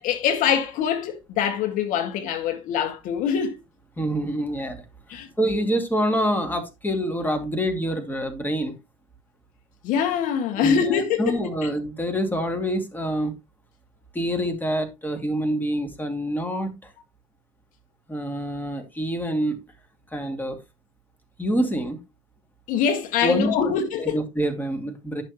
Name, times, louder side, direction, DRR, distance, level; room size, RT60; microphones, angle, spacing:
voice 1, 0.0-3.6 5.1-5.3 9.8-11.7 22.7-24.2, left 7 dB, 60° left, 1.9 m, -24 dB
voice 2, 4.0-4.8 5.4-8.7 10.6-13.3 14.1-16.8 18.1-19.6 20.1-20.6 21.4-22.0 23.2-23.7 24.0-25.2, equal, 10° left, 2.5 m, -26 dB
11.0 x 6.5 x 3.0 m
hypercardioid pair, 80°, 16 cm